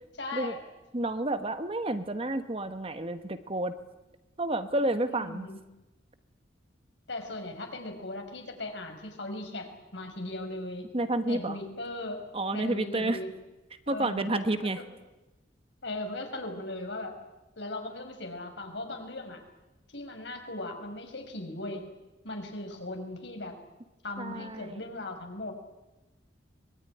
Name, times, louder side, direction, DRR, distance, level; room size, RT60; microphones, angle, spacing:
voice 1, 0.2-0.6 5.1-5.6 7.1-10.9 11.3-12.2 12.5-13.3 13.9-14.9 15.8-17.1 17.6-19.4 19.9-21.9 22.2-23.6 24.0-25.5, left 2 dB, 70° left, 4 dB, 5.1 m, -38 dB
voice 2, 0.9-3.7 4.4-5.5 10.9-11.6 12.3-13.2 13.9-14.8 24.2-24.8, right 1 dB, 30° right, 10 dB, 1.2 m, -30 dB
23.5 x 21.5 x 10.0 m, 1.1 s
head